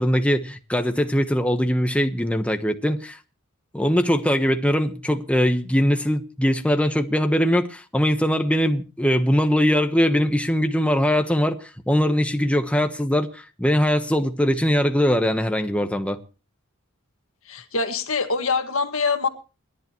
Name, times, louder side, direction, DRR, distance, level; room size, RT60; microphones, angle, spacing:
voice 1, 0.0-3.2 3.7-16.2, equal, 5° left, 1.1 m, -21 dB
voice 2, 17.5-19.3, left 4 dB, 75° left, 1.9 m, -24 dB
29.0 x 11.0 x 3.1 m
head